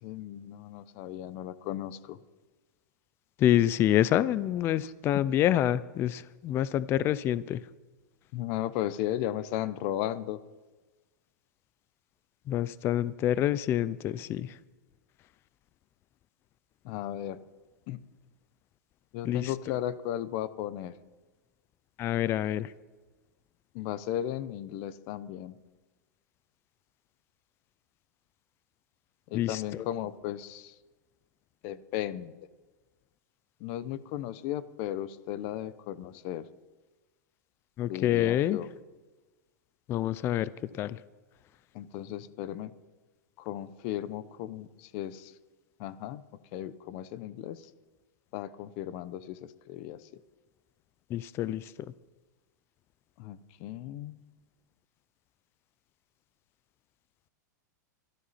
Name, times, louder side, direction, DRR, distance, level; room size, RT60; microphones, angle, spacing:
voice 1, 0.0-2.2 4.8-5.2 8.3-10.4 16.8-17.4 17.9-18.0 19.1-20.9 23.7-25.6 29.3-30.7 31.6-32.3 33.6-36.5 37.9-38.7 41.7-42.7 43.4-45.3 45.8-46.2 46.5-47.7 48.3-50.0 53.2-54.2, left 12 dB, 40° left, 15 dB, 0.8 m, -35 dB
voice 2, 3.4-7.6 12.5-14.5 19.2-19.5 22.0-22.7 29.3-29.8 37.8-38.6 39.9-40.5 40.8-41.0 51.1-51.6, left 12 dB, 25° left, 18 dB, 0.4 m, -27 dB
23.5 x 13.0 x 4.2 m, 1.2 s
supercardioid pair, 155°, 10 cm